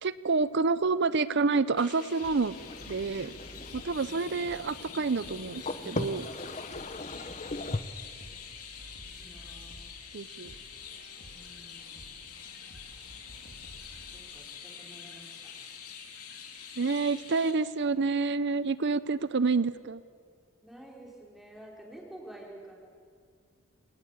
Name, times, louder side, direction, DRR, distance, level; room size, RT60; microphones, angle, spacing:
voice 1, 0.0-2.5 2.9-3.3 3.7-6.3 10.1-10.5 16.8-20.0, right 4 dB, 50° right, 16 dB, 0.6 m, -28 dB
Chirp tweet, 1.8-17.5, left 7 dB, 90° left, 2.9 m, -46 dB
sound 1, 2.2-14.2, equal, 50° left, 3.7 m, -53 dB
sound 2, 2.5-7.8, left 2 dB, 30° left, 0.9 m, -39 dB
voice 2, 9.0-9.9 11.3-12.3 14.1-15.5 20.6-22.7, right 1 dB, ahead, -3 dB, 4.4 m, -50 dB
26.0 x 18.0 x 8.3 m, 2.1 s
head